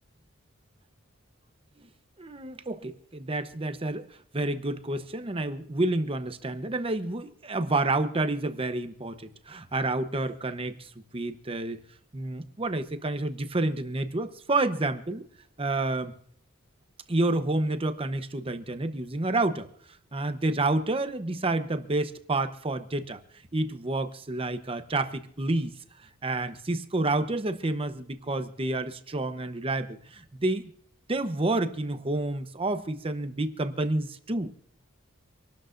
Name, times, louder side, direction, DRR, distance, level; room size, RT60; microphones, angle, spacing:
voice 1, 2.2-4.1 4.3-11.8 12.1-15.2 15.6-16.1 17.1-19.7 20.1-23.2 23.5-25.7 26.2-30.7 31.1-34.5, right 2 dB, 25° right, 9 dB, 0.9 m, -29 dB
26.5 x 12.5 x 2.6 m, 0.64 s
head